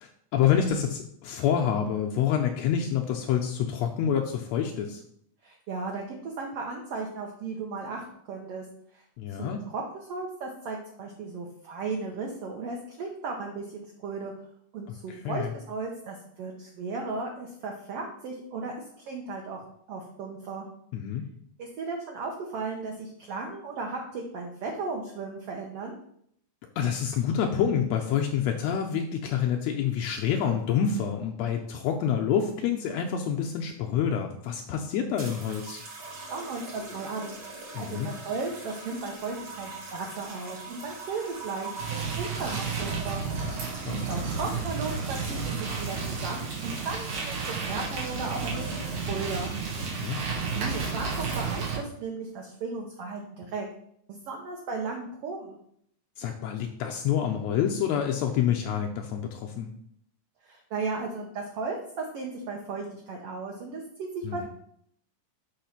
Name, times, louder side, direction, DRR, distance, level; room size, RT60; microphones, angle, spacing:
voice 1, 0.0-5.0 9.2-9.6 15.1-15.5 20.9-21.2 26.8-35.8 37.7-38.1 43.4-43.6 43.9-44.1 49.8-50.2 56.2-59.7 64.2-64.5, left 8 dB, 80° left, 2 dB, 1.6 m, -27 dB
voice 2, 5.4-8.6 8.9-9.0 9.4-14.3 14.7-20.7 21.6-26.0 36.2-37.4 37.8-43.2 43.9-48.7 49.1-49.5 50.6-53.7 54.1-55.6 60.4-64.5, right 4 dB, 70° right, 0 dB, 1.5 m, -36 dB
sound 1, 35.2-49.2 50.1-50.4, right 3 dB, 55° right, 1.3 m, -43 dB
sound 2, 41.8-51.8, right 5 dB, 90° right, 3.2 m, -32 dB
6.6 x 3.0 x 5.7 m, 0.68 s
omnidirectional pair, 3.5 m